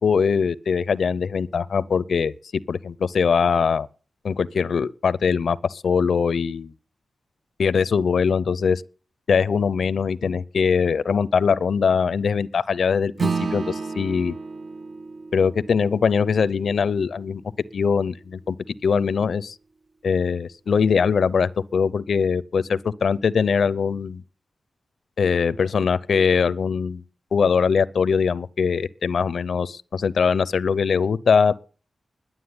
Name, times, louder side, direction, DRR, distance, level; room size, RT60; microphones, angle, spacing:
voice 1, 0.0-2.3 2.7-3.9 4.2-6.7 7.6-8.8 9.3-14.3 15.3-17.4 17.7-18.6 18.8-19.6 20.0-24.2 25.2-27.0 27.3-31.6, left 6 dB, 75° left, 0.5 m, -22 dB
Acoustic guitar / Strum, 13.2-18.0, right 4 dB, 50° right, 0.9 m, -32 dB
11.5 x 7.4 x 9.6 m
cardioid pair, 65°, 0 cm